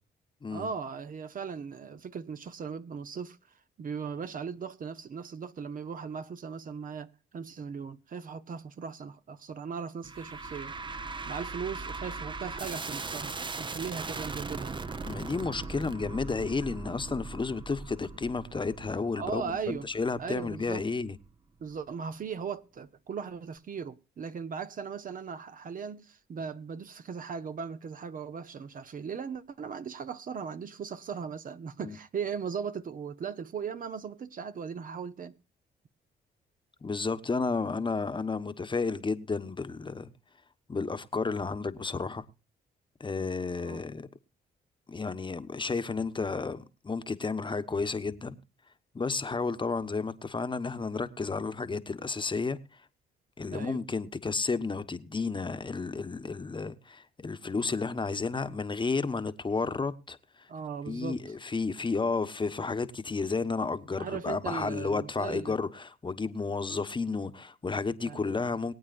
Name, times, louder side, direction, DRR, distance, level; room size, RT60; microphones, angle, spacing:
voice 1, 0.5-3.4 3.8-10.7 11.2-14.7 19.1-19.9 20.2-20.8 21.6-35.4 43.6-43.8 53.5-53.8 60.5-61.2 64.0-65.6 68.0-68.3, right 6 dB, 50° right, 1.1 m, -38 dB
sound 1, 10.0-21.3, right 3 dB, 25° right, 0.9 m, -39 dB
voice 2, 15.0-21.2 31.8-32.0 36.8-40.1 40.7-42.2 43.0-44.1 44.9-48.3 48.9-52.6 53.4-60.2 60.9-68.7, left 4 dB, 25° left, 1.2 m, -32 dB
23.0 x 8.6 x 2.6 m
cardioid pair, 75°, 18 cm